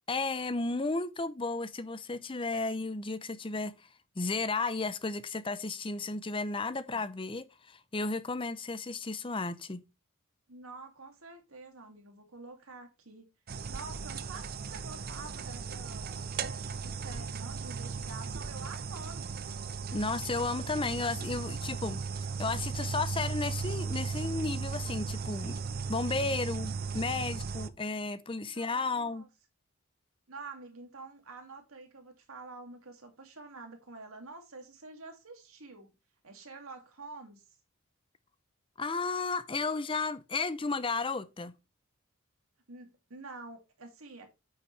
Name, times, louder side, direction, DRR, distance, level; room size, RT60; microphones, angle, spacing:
voice 1, 0.1-3.8 4.2-9.8 19.9-22.0 22.4-25.6 25.9-29.2 38.8-41.5, left 3 dB, 25° left, 0.6 m, -33 dB
voice 2, 10.5-13.3 13.7-19.3 28.5-29.3 30.3-35.9 36.2-37.5 42.7-44.3, right 3 dB, 75° right, 2.5 m, -48 dB
sound 1, 13.5-27.7, right 5 dB, 45° right, 0.6 m, -36 dB
9.4 x 6.5 x 3.3 m
head